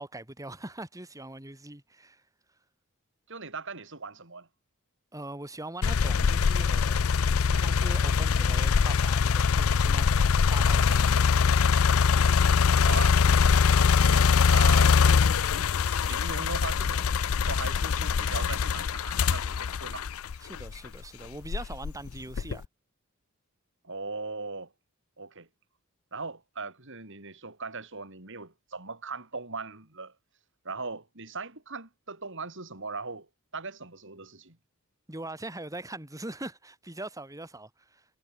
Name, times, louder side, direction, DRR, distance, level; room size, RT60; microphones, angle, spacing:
voice 1, 0.0-2.2 5.1-7.1 7.6-11.1 20.4-22.6 35.1-38.0, right 2 dB, 15° right, 2.8 m, -41 dB
voice 2, 3.3-4.5 12.8-13.2 14.0-20.1 23.8-24.7 25.2-25.5 26.1-30.1 30.6-33.3 33.5-34.6, right 4 dB, 60° right, 5.7 m, -39 dB
sound 1, 5.8-20.9 21.4-22.7, left 6 dB, 75° left, 0.5 m, -23 dB
head